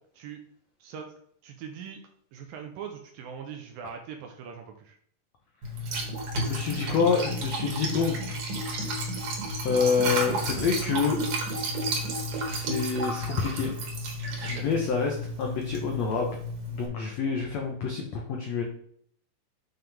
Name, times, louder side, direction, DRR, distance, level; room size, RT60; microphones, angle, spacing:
voice 1, 0.8-1.1 1.4-2.0 2.3-5.0 14.4-14.7, right 7 dB, 75° right, 4 dB, 2.2 m, -41 dB
Liquid, 5.6-16.9, right 1 dB, 60° right, 3.4 m, -32 dB
voice 2, 6.3-8.3 8.7-9.0 9.6-11.2 12.5-13.7 14.4-16.4 16.7-18.6, left 5 dB, 90° left, 1 dB, 1.5 m, -27 dB
7.6 x 5.8 x 3.5 m, 0.64 s
omnidirectional pair, 4.7 m